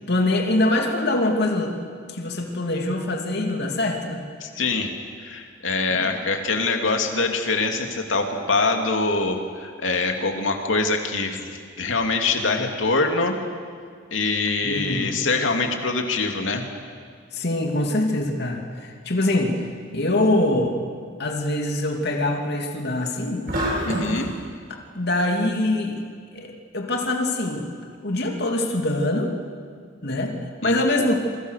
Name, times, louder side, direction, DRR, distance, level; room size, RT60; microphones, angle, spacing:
voice 1, 0.1-1.7 2.1-4.3 5.9-6.2 14.6-15.2 17.3-19.7 19.9-20.8 21.2-23.5 24.7-26.0 26.3-27.7 28.0-29.3 30.0-31.2, left 1 dB, 60° left, 2 dB, 2.7 m, -24 dB
voice 2, 4.4-4.9 5.2-11.5 11.8-13.3 14.1-16.6 23.8-24.3 30.6-31.0, left 3 dB, 80° left, 4 dB, 2.8 m, -24 dB
sound 1, 23.5-24.3, equal, 50° right, 6.7 m, -26 dB
28.0 x 23.5 x 6.6 m, 2.1 s
head